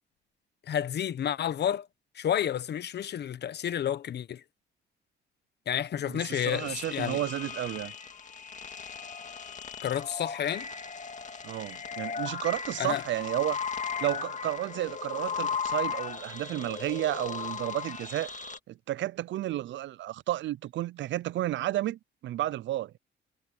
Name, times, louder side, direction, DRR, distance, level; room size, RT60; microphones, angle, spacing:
voice 1, 0.7-1.9 2.1-4.4 5.7-7.2 9.8-10.7 12.8-13.0, left 9 dB, 60° left, 1.1 m, -30 dB
voice 2, 6.0-7.9 11.4-13.6 14.0-18.3 18.7-23.0, right 14 dB, 70° right, 0.5 m, -32 dB
sound 1, 6.4-18.6, left 6 dB, 40° left, 2.4 m, -37 dB
cardioid pair, 90°, 20 cm